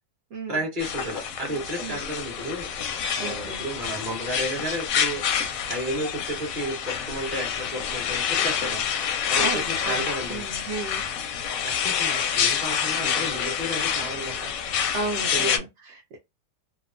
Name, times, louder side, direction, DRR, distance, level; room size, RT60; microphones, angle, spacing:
voice 1, 0.5-2.7 3.2-5.2 5.6-8.8 9.3-10.4 11.6-14.5 15.3-15.6, right 1 dB, 35° right, 1.2 m, -32 dB
sound 1, 0.8-15.6, left 8 dB, 70° left, 0.9 m, -27 dB
voice 2, 3.2-3.6 9.4-11.0 14.9-16.2, right 3 dB, 65° right, 0.7 m, -34 dB
2.8 x 2.1 x 2.5 m
omnidirectional pair, 1.8 m